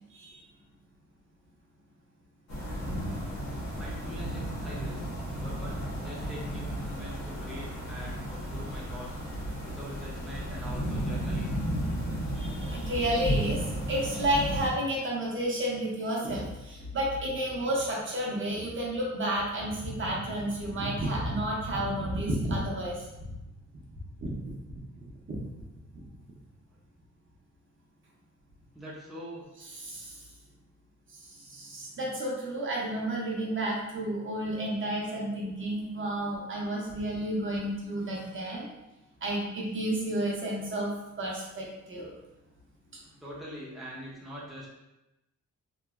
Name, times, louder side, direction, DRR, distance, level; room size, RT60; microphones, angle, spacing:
sound 1, 2.5-14.7, equal, 65° left, 1.2 m, -33 dB
voice 1, 3.7-5.1 5.4-9.2 9.6-11.5 26.4-26.8 28.7-29.4 43.1-44.7, equal, ahead, -6 dB, 0.6 m, -44 dB
voice 2, 12.4-13.6 13.9-23.3 24.2-24.3 29.8-30.1 31.5-38.7 39.2-40.9 41.2-42.1, right 1 dB, 40° right, -3 dB, 0.6 m, -31 dB
3.0 x 2.5 x 2.4 m, 0.96 s
wide cardioid pair, 130°, 30 cm